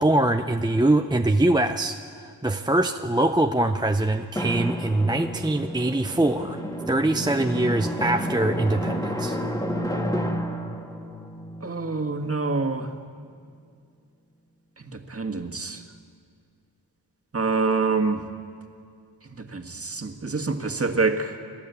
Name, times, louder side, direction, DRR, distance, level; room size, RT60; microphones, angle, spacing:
voice 1, 0.0-6.6 6.9-9.4, right 1 dB, 10° right, 6 dB, 0.6 m, -23 dB
Drum, 4.4-12.6, equal, 10° left, 1.7 m, -30 dB
voice 2, 11.6-12.9 15.1-15.8 17.3-18.2 19.5-21.3, right 4 dB, 35° right, 5 dB, 1.8 m, -26 dB
29.5 x 12.0 x 8.3 m, 2.3 s
wide cardioid pair, 75°, 41 cm